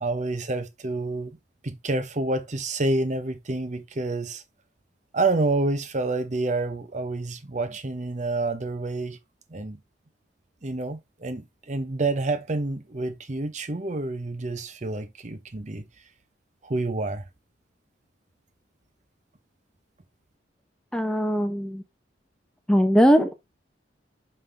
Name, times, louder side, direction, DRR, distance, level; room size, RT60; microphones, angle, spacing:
voice 1, 0.0-1.4 1.6-4.4 5.1-9.2 9.5-9.8 10.6-15.9 16.6-17.2, right 2 dB, 40° right, 0.8 m, -28 dB
voice 2, 20.9-21.8 22.7-23.3, equal, 5° left, 0.7 m, -20 dB
5.6 x 5.5 x 3.3 m
head